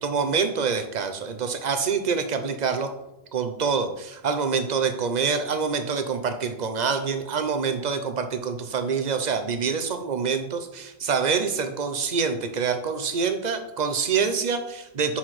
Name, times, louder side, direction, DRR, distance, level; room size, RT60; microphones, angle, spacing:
voice 1, 0.0-2.9 3.3-15.2, right 5 dB, 45° right, 8 dB, 0.8 m, -26 dB
5.7 x 4.9 x 5.8 m, 0.88 s
omnidirectional pair, 1.1 m